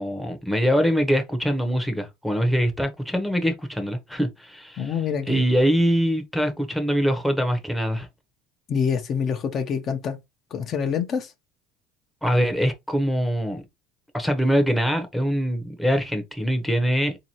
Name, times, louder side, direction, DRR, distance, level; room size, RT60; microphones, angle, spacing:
voice 1, 0.0-4.9 5.3-8.1 12.2-13.6 14.1-17.2, equal, ahead, 0.8 m, -23 dB
voice 2, 4.8-5.4 8.7-10.2 10.5-11.3, left 7 dB, 45° left, 0.7 m, -26 dB
3.8 x 2.8 x 2.9 m
supercardioid pair, 115°, 0 cm